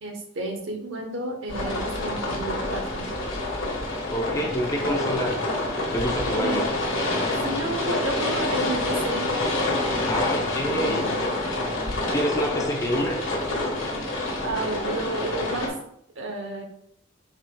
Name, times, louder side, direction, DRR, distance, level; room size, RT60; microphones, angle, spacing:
voice 1, 0.0-3.1 6.3-7.0 7.4-9.3 10.5-11.2 14.4-15.7 16.1-16.6, right 2 dB, 65° right, 2 dB, 0.9 m, -31 dB
sound 1, 1.5-15.7, left 2 dB, 75° left, 1.3 m, -27 dB
voice 2, 4.1-6.7 10.1-11.1 12.1-13.3, equal, 15° left, 1 dB, 0.6 m, -28 dB
4.8 x 4.3 x 2.2 m, 0.71 s
head